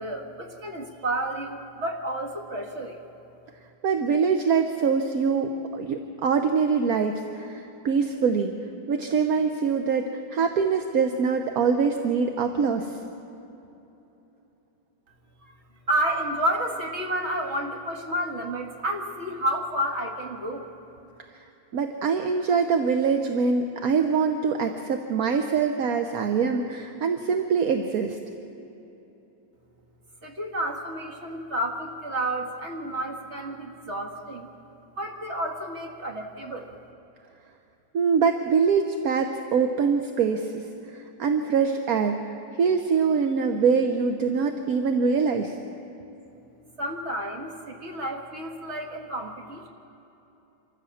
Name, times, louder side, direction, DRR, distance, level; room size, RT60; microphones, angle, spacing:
voice 1, 0.0-3.1 15.9-20.7 30.2-34.5 35.0-36.7 46.8-49.7, right 1 dB, 35° right, 2 dB, 1.9 m, -30 dB
voice 2, 3.8-8.5 8.9-13.0 21.3-21.4 21.7-28.2 37.9-40.6 40.9-42.2 42.6-45.5, right 5 dB, 55° right, 5 dB, 1.1 m, -24 dB
25.5 x 14.5 x 7.1 m, 3.0 s
omnidirectional pair, 2.1 m